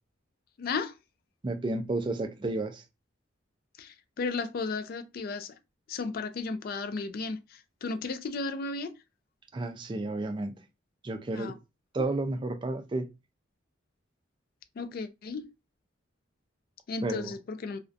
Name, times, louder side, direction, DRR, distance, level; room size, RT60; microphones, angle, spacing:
voice 1, 0.6-1.0 3.8-5.5 5.9-8.9 11.3-11.5 12.0-12.1 14.8-15.5 16.9-17.8, left 4 dB, 50° left, 0.3 m, -34 dB
voice 2, 1.4-2.8 9.5-10.6 11.0-11.5 11.9-13.1 17.0-17.3, right 2 dB, 25° right, 0.3 m, -32 dB
2.5 x 2.1 x 2.4 m
head